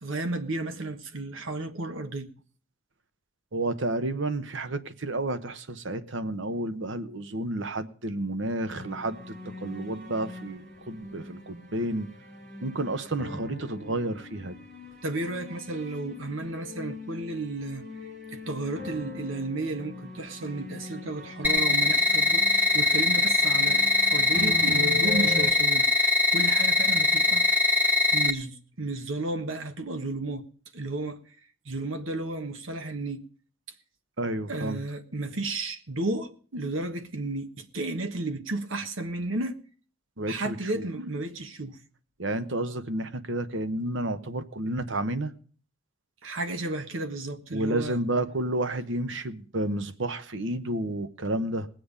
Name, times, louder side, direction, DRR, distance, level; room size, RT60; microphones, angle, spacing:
voice 1, 0.0-2.3 15.0-17.8 18.3-25.9 26.3-27.4 28.1-30.5 30.7-31.2 31.6-33.2 34.5-39.6 40.3-41.8 46.2-48.0, right 2 dB, 90° right, 1.3 m, -33 dB
voice 2, 3.5-9.2 9.4-12.1 12.6-14.6 34.2-34.8 40.2-40.9 42.2-45.3 47.5-51.7, right 1 dB, 70° right, 1.0 m, -31 dB
sound 1, 8.7-25.5, left 2 dB, 45° right, 4.6 m, -41 dB
sound 2, 21.4-28.3, left 3 dB, 10° right, 1.0 m, -22 dB
20.0 x 7.8 x 5.1 m
head